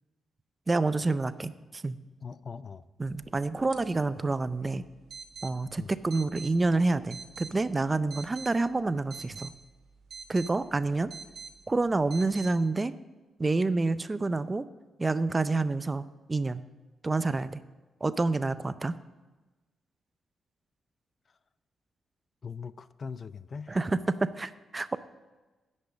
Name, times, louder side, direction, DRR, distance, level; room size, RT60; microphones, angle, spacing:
voice 1, 0.7-2.0 3.0-4.8 5.4-9.5 10.3-11.1 11.7-12.9 13.4-14.7 15.0-16.6 17.0-17.6 18.0-18.9 23.7-25.0, right 3 dB, 30° right, 14 dB, 0.5 m, -28 dB
voice 2, 2.2-2.9 5.8-5.9 21.3-21.4 22.4-23.8, left 5 dB, 50° left, 16 dB, 0.4 m, -41 dB
sound 1, 3.0-12.5, right 5 dB, 70° right, 1.2 m, -48 dB
10.0 x 5.4 x 7.2 m, 1.2 s
cardioid pair, 70°, 0 cm